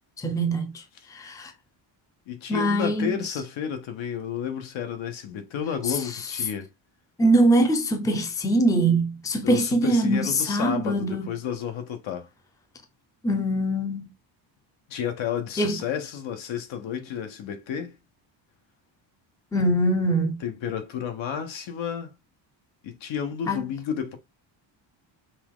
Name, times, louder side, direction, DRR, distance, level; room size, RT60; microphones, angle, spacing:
voice 1, 0.2-0.8 1.1-1.5 2.5-3.2 5.8-6.3 7.2-11.3 13.2-14.1 15.6-15.8 19.5-20.4 23.5-23.6, right 1 dB, 10° left, 0.6 m, -23 dB
voice 2, 2.3-6.7 9.4-12.3 14.9-17.9 20.4-22.1 22.8-24.2, left 8 dB, 75° left, 1.2 m, -31 dB
5.7 x 2.5 x 3.6 m
cardioid pair, 175°, 46 cm